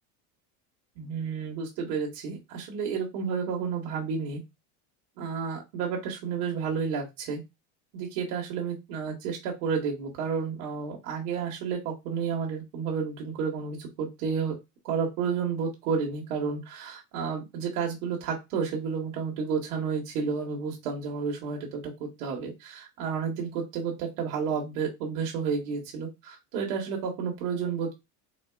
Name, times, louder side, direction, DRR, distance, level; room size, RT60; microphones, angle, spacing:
voice 1, 1.0-4.4 5.2-7.4 7.9-14.5 14.8-28.0, right 6 dB, 70° right, -2 dB, 1.3 m, -31 dB
4.2 x 2.3 x 2.3 m, 0.22 s
supercardioid pair, 115°, 44 cm